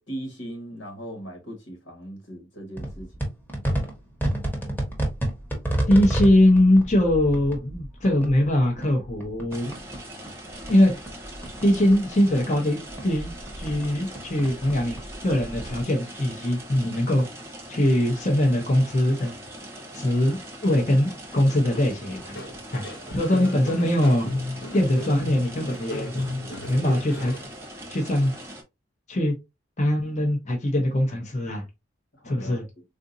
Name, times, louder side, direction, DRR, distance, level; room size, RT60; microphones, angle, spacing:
voice 1, 0.0-3.1 23.1-23.2 32.2-32.6, right 1 dB, 85° left, 1.6 m, -38 dB
sound 1, 2.8-10.0 10.3-12.6 12.9-15.8, right 1 dB, 10° left, 1.1 m, -31 dB
voice 2, 5.9-9.8 10.7-11.0 11.6-15.0 15.2-17.3 17.7-19.3 19.9-22.4 22.7-22.8 23.1-24.3 24.7-26.1 26.7-27.3 27.9-28.3 29.1-29.3 29.8-31.6 32.2-32.6, left 1 dB, 40° left, 0.8 m, -22 dB
sound 2, 9.5-28.6, equal, 15° right, 0.8 m, -41 dB
sound 3, 21.4-27.5, left 1 dB, 70° left, 0.9 m, -34 dB
3.7 x 2.5 x 2.5 m
head